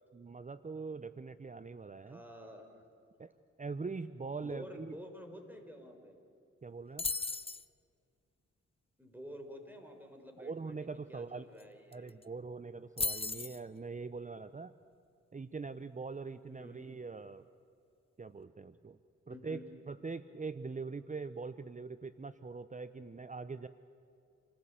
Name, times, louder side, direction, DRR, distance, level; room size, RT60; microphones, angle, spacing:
voice 1, 0.1-2.2 3.2-3.3 3.6-5.0 6.6-7.1 10.4-11.5 11.9-14.7 15.3-17.5 18.2-19.0 19.3-19.6 19.9-23.7, right 4 dB, 25° right, 13 dB, 0.8 m, -42 dB
voice 2, 2.0-2.9 4.4-6.1 9.0-10.8 11.1-12.2 16.5-16.9 19.3-19.6, equal, 5° right, 4 dB, 5.0 m, -50 dB
sound 1, 7.0-7.6 11.6-11.7 11.9-12.2 13.0-13.6, left 3 dB, 20° left, 0.8 m, -35 dB
27.5 x 15.0 x 8.8 m, 2.5 s
supercardioid pair, 45°, 31 cm